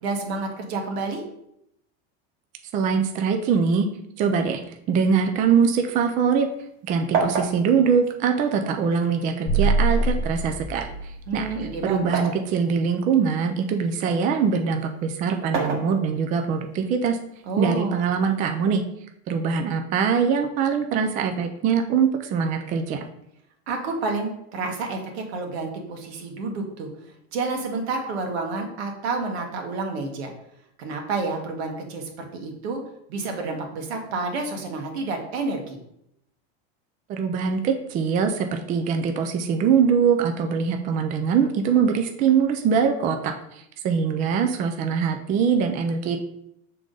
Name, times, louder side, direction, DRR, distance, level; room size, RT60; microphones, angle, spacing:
voice 1, 0.0-1.2 11.3-12.2 17.4-18.0 23.7-26.9 27.3-30.3 30.8-32.8 33.1-35.8, right 3 dB, 85° right, 2 dB, 1.5 m, -29 dB
voice 2, 2.7-3.8 4.2-4.6 4.9-6.5 6.9-11.5 11.8-17.2 17.6-18.8 19.3-23.0 37.1-46.2, right 6 dB, 25° right, 5 dB, 0.4 m, -23 dB
sound 1, 5.5-6.8 7.1-9.1 10.0-12.5 13.0-14.3 15.3-16.5 17.6-18.6, right 4 dB, 70° right, 1.3 m, -31 dB
sound 2, 9.5-11.9, right 3 dB, 20° left, 0.7 m, -24 dB
6.7 x 3.7 x 3.8 m, 0.76 s
supercardioid pair, 155°, 31 cm